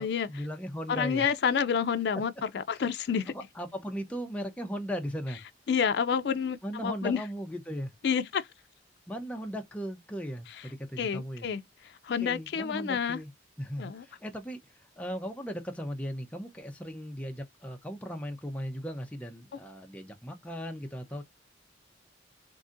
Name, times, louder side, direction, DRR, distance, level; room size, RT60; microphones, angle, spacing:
voice 1, 0.0-1.3 2.7-2.8 3.3-5.4 6.6-7.9 9.1-11.5 12.2-13.3 13.6-21.2, equal, 10° left, 0.6 m, -37 dB
voice 2, 0.9-3.3 5.7-7.2 8.0-8.5 11.0-11.6 12.0-13.2 13.8-14.0, left 7 dB, 65° left, 0.4 m, -29 dB
3.8 x 2.7 x 2.5 m
head